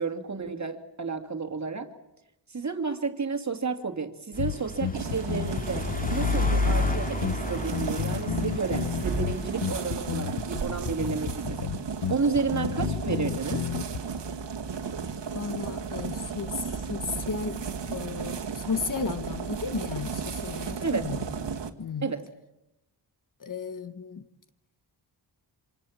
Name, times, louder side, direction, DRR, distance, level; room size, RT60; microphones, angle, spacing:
voice 1, 0.0-1.9 2.5-11.7 12.1-13.6 20.8-21.1 22.0-22.3, right 4 dB, 40° right, 2.5 m, -31 dB
sound 1, 4.3-9.9, left 3 dB, 20° left, 2.6 m, -31 dB
sound 2, 4.4-14.0, left 8 dB, 65° left, 1.1 m, -32 dB
sound 3, 4.9-21.7, right 5 dB, 70° right, 2.1 m, -34 dB
voice 2, 15.3-21.3 21.8-22.1 23.4-24.2, left 4 dB, 45° left, 1.4 m, -34 dB
28.0 x 26.5 x 7.4 m
wide cardioid pair, 100°, 44 cm